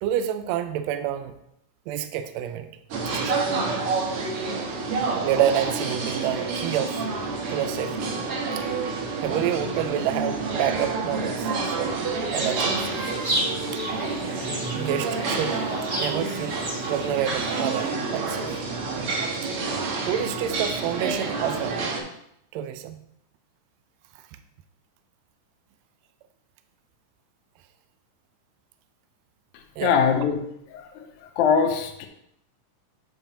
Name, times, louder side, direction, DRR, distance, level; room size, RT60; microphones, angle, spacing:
voice 1, 0.0-1.3 1.9-2.7 3.1-3.5 5.2-7.0 7.5-8.1 8.6-8.7 9.2-11.5 11.7-13.0 13.7-13.8 14.7-16.6 16.9-18.6 20.1-21.9 22.5-23.0 29.8-30.0, right 10 dB, 85° right, 9 dB, 1.5 m, -28 dB
sound 1, 2.9-22.0, right 3 dB, 60° right, 1.6 m, -28 dB
sound 2, 12.3-17.9, right 1 dB, 30° right, 2.0 m, -33 dB
voice 2, 29.8-30.4 30.7-31.1 31.4-32.1, left 6 dB, 80° left, 5 dB, 2.0 m, -22 dB
7.9 x 7.1 x 2.9 m, 0.76 s
omnidirectional pair, 3.7 m